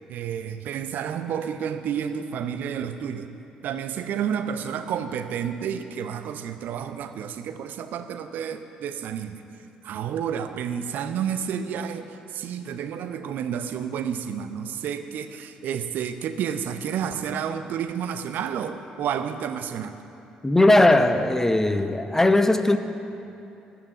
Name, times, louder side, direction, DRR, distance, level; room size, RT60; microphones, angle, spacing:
voice 1, 0.1-3.3 3.6-9.4 9.8-20.0, right 8 dB, 55° right, 0.7 m, -30 dB
voice 2, 20.4-22.8, left 2 dB, 10° left, 0.8 m, -18 dB
13.5 x 5.9 x 8.4 m
figure-of-eight pair, 45°, 4 cm